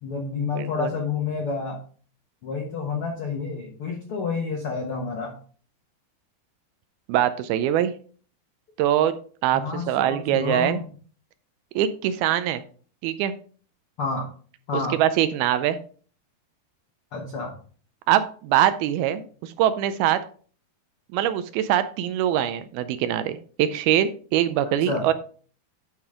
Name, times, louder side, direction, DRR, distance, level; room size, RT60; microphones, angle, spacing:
voice 1, 0.0-1.8 2.4-5.4 9.5-10.9 14.0-14.3 14.7-15.0 17.1-17.5 24.7-25.1, left 4 dB, 75° left, 0 dB, 1.3 m, -29 dB
voice 2, 0.5-0.9 7.1-7.9 8.8-9.1 9.4-10.8 11.8-12.6 13.0-13.3 14.9-15.8 18.1-20.2 21.1-25.1, right 11 dB, 80° right, 12 dB, 2.3 m, -23 dB
11.0 x 5.0 x 3.6 m, 0.43 s
omnidirectional pair, 4.6 m